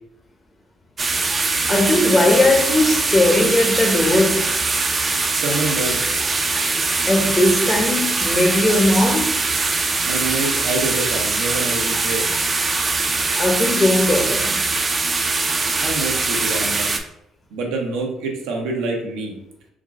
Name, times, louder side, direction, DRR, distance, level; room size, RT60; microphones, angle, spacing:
sound 1, 1.0-17.0, right 3 dB, 30° right, 0.4 m, -22 dB
voice 1, 1.7-4.5 7.1-9.3 13.4-14.6, left 1 dB, 25° left, 0.7 m, -18 dB
voice 2, 5.3-6.1 10.1-12.3 15.8-16.9 17.5-19.3, right 3 dB, 90° right, 0.7 m, -26 dB
3.6 x 2.0 x 3.5 m
cardioid pair, 90°, 0 cm